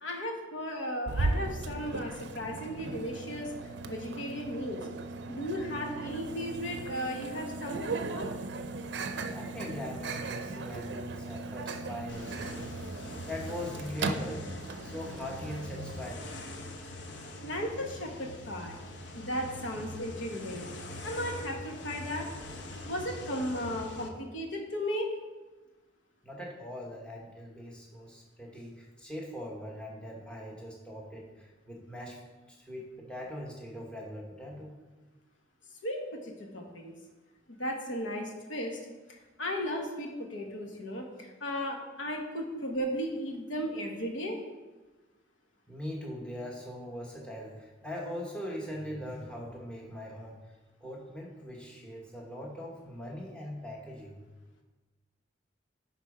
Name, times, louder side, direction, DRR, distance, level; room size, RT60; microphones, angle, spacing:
voice 1, 0.0-3.5 3.8-4.8 5.3-8.3 17.4-18.8 19.2-20.7 21.0-22.3 22.8-25.1 35.8-36.9 37.5-38.8 39.1-44.4, equal, 90° left, 2 dB, 1.3 m, -35 dB
Microwave oven, 1.1-16.1, right 3 dB, 70° right, 0.5 m, -37 dB
voice 2, 9.3-12.7 13.3-14.5 14.8-16.3 26.2-32.2 32.5-34.7 45.7-50.4 50.8-54.2, equal, 5° left, -2 dB, 1.1 m, -41 dB
sound 1, 12.1-24.1, left 1 dB, 70° left, 0.8 m, -43 dB
10.0 x 4.0 x 4.9 m, 1.2 s
head